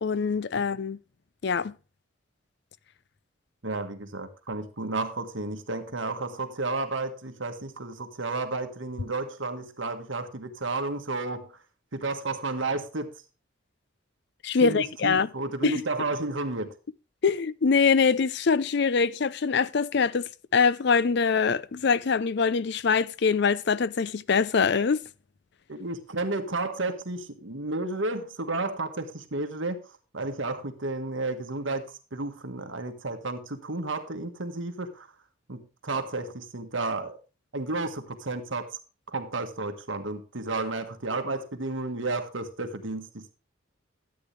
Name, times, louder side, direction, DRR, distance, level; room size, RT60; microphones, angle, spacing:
voice 1, 0.0-1.0 1.4-1.7 14.4-15.3 15.6-15.8 17.2-25.0, left 5 dB, 55° left, 0.5 m, -24 dB
voice 2, 3.6-11.5 11.9-13.1 14.6-16.7 25.7-29.8 30.1-35.1 35.5-37.2 37.5-38.8 39.1-43.3, right 2 dB, 70° right, 1.5 m, -32 dB
13.0 x 8.6 x 3.3 m
head